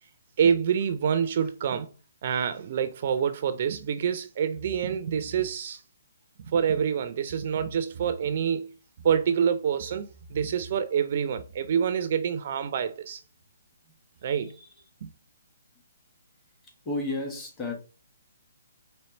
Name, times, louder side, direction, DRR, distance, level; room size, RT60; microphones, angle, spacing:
voice 1, 0.4-1.9 2.2-5.8 6.5-8.7 9.0-13.2 14.2-14.6 15.0-15.1, right 7 dB, 45° right, 0.4 m, -27 dB
voice 2, 14.2-14.7 16.8-17.7, left 2 dB, 15° left, 1.2 m, -33 dB
4.4 x 3.0 x 3.0 m
hypercardioid pair, 155°, 0 cm